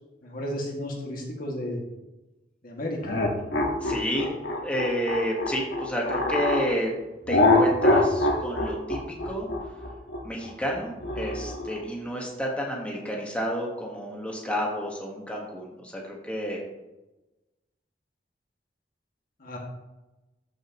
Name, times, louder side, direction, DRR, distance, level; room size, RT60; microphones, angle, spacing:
voice 1, 0.2-1.8 2.6-3.2 19.4-19.6, left 1 dB, 55° left, -1 dB, 2.1 m, -33 dB
sound 1, 3.0-6.7 7.3-11.8, left 2 dB, 70° left, 1.4 m, -24 dB
voice 2, 3.8-6.9 7.3-9.7 10.2-16.6, equal, 5° left, -2 dB, 1.4 m, -30 dB
13.5 x 6.4 x 3.0 m, 1.0 s
head